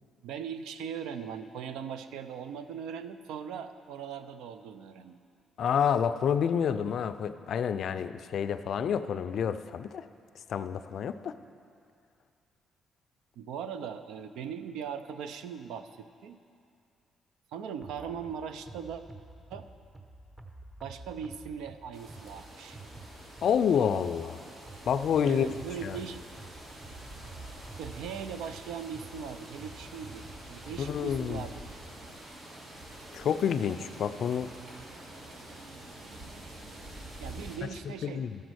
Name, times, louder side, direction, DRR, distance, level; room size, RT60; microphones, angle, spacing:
voice 1, 0.2-5.2 13.4-16.4 17.5-19.0 19.5-19.7 20.8-22.8 25.3-26.2 27.8-31.8 37.2-38.3, right 7 dB, 90° right, 10 dB, 0.4 m, -39 dB
voice 2, 5.6-10.1 10.5-11.3 23.4-24.4 24.9-25.5 25.8-26.0 30.8-31.4 33.1-34.5 38.0-38.4, left 8 dB, 65° left, 12 dB, 0.3 m, -28 dB
sound 1, 17.8-23.9 24.7-31.5, right 2 dB, 20° right, 0.9 m, -50 dB
walking ambience forest autumn crunchy step walking leafes, 21.9-37.6, right 1 dB, 65° right, 2.1 m, -47 dB
13.0 x 5.1 x 6.2 m, 2.4 s
cardioid pair, 90°, 0 cm